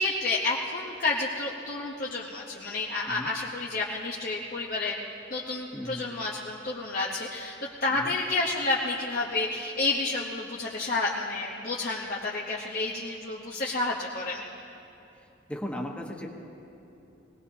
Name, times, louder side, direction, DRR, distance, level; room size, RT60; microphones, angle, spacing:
voice 1, 0.0-5.0 5.3-7.5 7.8-14.4, left 3 dB, 50° left, -4 dB, 1.0 m, -30 dB
voice 2, 5.7-6.0 7.9-8.1 15.5-16.3, equal, 5° left, 0 dB, 1.2 m, -36 dB
21.5 x 18.5 x 2.8 m, 2.9 s
head